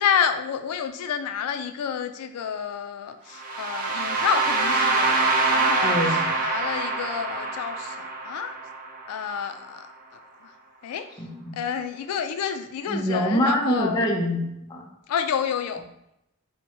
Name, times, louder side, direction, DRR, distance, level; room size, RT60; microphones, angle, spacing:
voice 1, 0.0-8.5 9.1-9.9 10.8-11.1 11.5-14.0 15.1-15.8, left 7 dB, 85° left, 8 dB, 0.3 m, -29 dB
sound 1, 3.4-9.3, right 3 dB, 40° right, 0.6 m, -25 dB
voice 2, 5.8-6.2 11.2-11.6 12.9-14.9, equal, 20° left, -1 dB, 0.6 m, -25 dB
6.0 x 2.1 x 2.9 m, 0.83 s
head